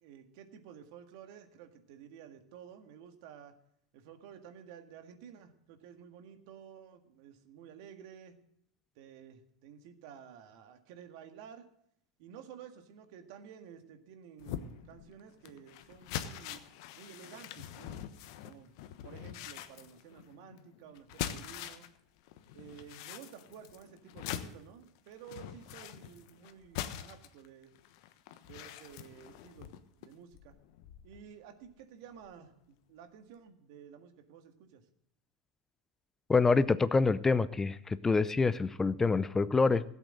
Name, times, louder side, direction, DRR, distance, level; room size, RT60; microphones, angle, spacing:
voice 1, 0.0-3.5 3.9-8.4 9.0-11.7 12.2-16.6 16.9-18.0 18.4-18.7 19.0-21.9 22.5-27.7 28.4-29.7 30.0-30.6 31.0-34.8, right 8 dB, 65° right, 7 dB, 1.8 m, -52 dB
sound 1, 14.4-22.0 22.3-31.3 31.6-31.8 32.2-32.3, left 11 dB, 65° left, 1.1 m, -44 dB
voice 2, 36.3-39.8, left 4 dB, 15° left, 16 dB, 0.5 m, -26 dB
16.0 x 8.2 x 7.8 m, 0.71 s
hypercardioid pair, 90°, 2 cm